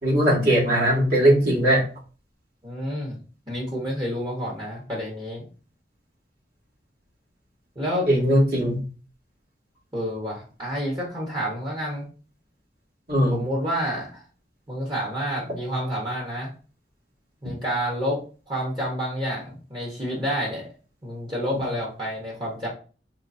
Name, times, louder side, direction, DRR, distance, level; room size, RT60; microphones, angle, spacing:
voice 1, 0.0-1.8 8.1-8.8 13.1-13.4 21.5-21.6, right 1 dB, 55° right, -5 dB, 2.3 m, -19 dB
voice 2, 2.6-3.2 3.5-5.5 7.7-8.1 9.9-12.1 13.3-14.2 14.7-16.5 17.4-20.7 21.0-22.7, equal, 25° right, -4 dB, 1.3 m, -29 dB
4.8 x 3.3 x 2.7 m, 0.36 s
head